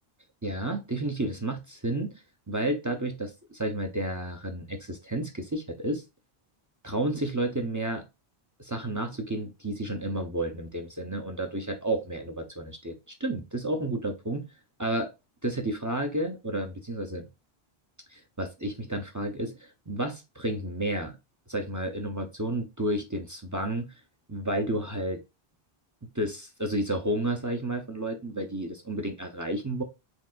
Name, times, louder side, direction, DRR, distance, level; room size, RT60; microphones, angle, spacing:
voice 1, 0.4-2.2 2.5-6.0 6.8-8.0 8.6-14.4 14.8-15.1 15.4-17.3 18.1-21.2 21.5-23.9 24.3-25.2 26.1-29.8, right 1 dB, 20° right, 0.6 m, -31 dB
4.5 x 3.7 x 2.4 m
omnidirectional pair, 1.1 m